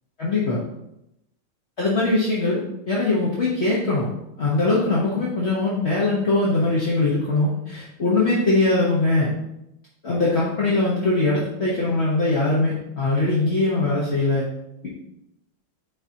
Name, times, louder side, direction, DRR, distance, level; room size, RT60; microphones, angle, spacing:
voice 1, 0.2-0.6 1.8-2.6 2.9-4.1 4.4-9.3 10.0-14.4, left 2 dB, 40° left, -6 dB, 1.0 m, -21 dB
9.6 x 3.9 x 2.9 m, 0.85 s
omnidirectional pair, 2.4 m